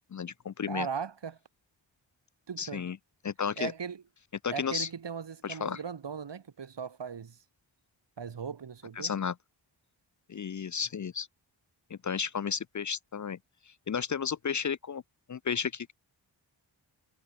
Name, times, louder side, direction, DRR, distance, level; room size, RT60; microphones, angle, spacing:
voice 1, 0.1-0.9 2.6-3.0 3.2-3.7 4.4-4.9 5.4-5.8 9.0-9.3 10.3-11.3 11.9-13.4 13.9-15.0 15.3-15.9, left 7 dB, 40° left, 0.5 m, -33 dB
voice 2, 0.7-1.4 2.5-2.9 3.6-4.0 4.5-7.4 8.2-9.1, right 6 dB, 65° right, 2.2 m, -38 dB
wide cardioid pair, 90°, 45 cm